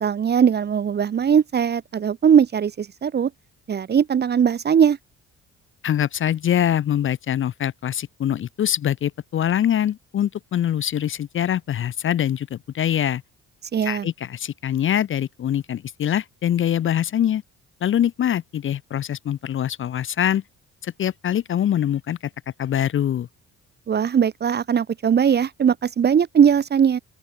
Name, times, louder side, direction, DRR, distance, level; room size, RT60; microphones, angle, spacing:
voice 1, 0.0-3.3 3.7-5.0 13.7-14.1 23.9-27.0, right 7 dB, 35° right, 0.6 m, -19 dB
voice 2, 5.8-13.2 13.8-17.4 17.8-20.4 20.8-22.2 22.6-23.3, left 10 dB, 45° left, 0.5 m, -23 dB
open air
cardioid pair, 90°, 30 cm